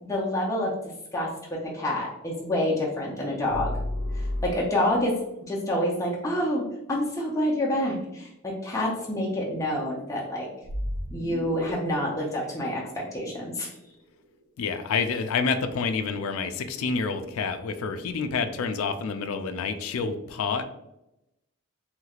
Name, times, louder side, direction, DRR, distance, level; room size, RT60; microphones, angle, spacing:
voice 1, 0.0-0.7 1.1-3.7 4.1-5.2 5.5-6.6 6.9-10.5 11.1-13.7, left 1 dB, 15° left, -5 dB, 0.5 m, -28 dB
sound 1, 3.5-5.0 10.6-13.7, left 1 dB, 50° right, 0.4 m, -33 dB
voice 2, 14.6-20.6, left 5 dB, 80° left, 9 dB, 0.3 m, -28 dB
3.1 x 3.1 x 2.3 m, 0.88 s
head